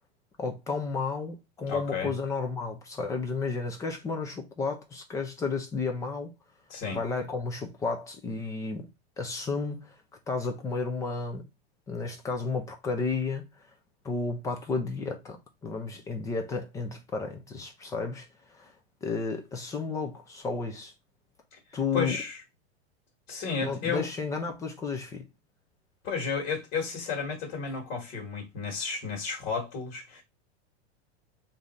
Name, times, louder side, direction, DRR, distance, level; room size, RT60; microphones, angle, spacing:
voice 1, 0.4-6.3 6.9-8.9 9.2-10.0 10.3-11.4 11.9-13.7 14.0-18.7 19.0-20.9 21.7-22.2 23.6-25.2, left 4 dB, 10° left, 0.3 m, -32 dB
voice 2, 1.7-2.1 6.7-7.0 21.7-22.4 23.3-24.1 26.0-30.2, left 5 dB, 40° left, 1.5 m, -32 dB
3.5 x 2.6 x 4.0 m
supercardioid pair, 150°, 32 cm